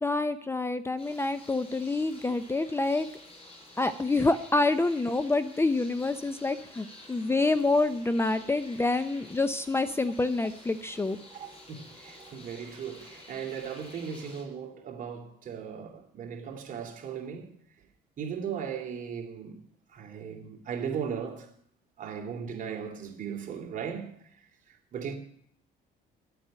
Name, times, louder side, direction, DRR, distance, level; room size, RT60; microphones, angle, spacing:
voice 1, 0.0-3.1 3.8-11.2, left 2 dB, 15° left, 0.6 m, -27 dB
sound 1, 1.0-14.4, left 1 dB, 35° left, 5.7 m, -50 dB
voice 2, 11.3-17.5 18.2-19.6 19.9-21.5 22.0-24.2 24.7-25.1, right 7 dB, 50° right, 2.8 m, -37 dB
13.0 x 8.2 x 8.8 m
cardioid pair, 110°, 17 cm